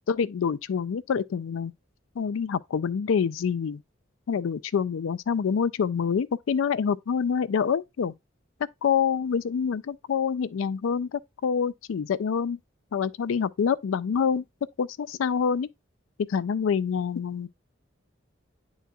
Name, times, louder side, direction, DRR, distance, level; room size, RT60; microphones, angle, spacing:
voice 1, 0.1-1.7 2.2-3.8 4.3-8.1 8.8-12.6 12.9-14.4 14.8-15.7 16.2-17.5, left 6 dB, 85° left, 0.4 m, -26 dB
10.0 x 4.0 x 2.3 m
head